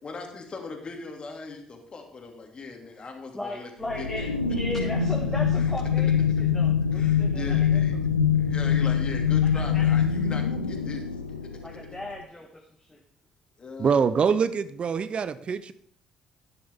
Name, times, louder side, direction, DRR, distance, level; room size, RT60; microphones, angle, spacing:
voice 1, 0.0-3.7 4.0-4.3 6.9-7.9 8.4-11.1 11.4-11.5 13.6-14.1, left 4 dB, 40° left, 2 dB, 2.5 m, -39 dB
voice 2, 3.3-7.8 9.5-9.9 11.6-13.0, left 1 dB, 10° left, 0 dB, 1.7 m, -37 dB
sound 1, 3.8-12.1, left 7 dB, 90° left, 0.5 m, -24 dB
voice 3, 13.8-15.7, right 6 dB, 40° right, 14 dB, 0.6 m, -24 dB
11.5 x 9.9 x 3.5 m, 0.63 s
figure-of-eight pair, 50°, 3 cm